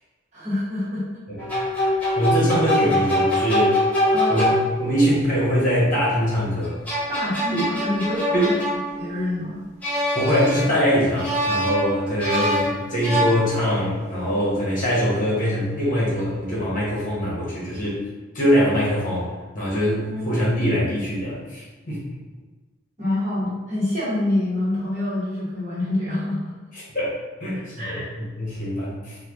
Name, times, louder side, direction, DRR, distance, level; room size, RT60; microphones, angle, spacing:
voice 1, 0.3-1.0 4.1-4.4 7.1-9.6 20.0-20.3 23.0-26.5 27.8-28.1, left 1 dB, 35° right, -9 dB, 1.2 m, -26 dB
sound 1, 1.4-5.0 6.6-9.3 9.8-10.9 11.2-13.8, left 1 dB, 5° left, 0.6 m, -24 dB
voice 2, 2.2-3.7 4.3-4.5 4.8-6.8 7.5-7.6 8.3-8.5 10.1-18.0 18.3-19.3 19.5-22.0 26.7-27.1 27.4-29.2, equal, 40° left, -7 dB, 1.0 m, -23 dB
3.2 x 2.3 x 3.4 m, 1.3 s
head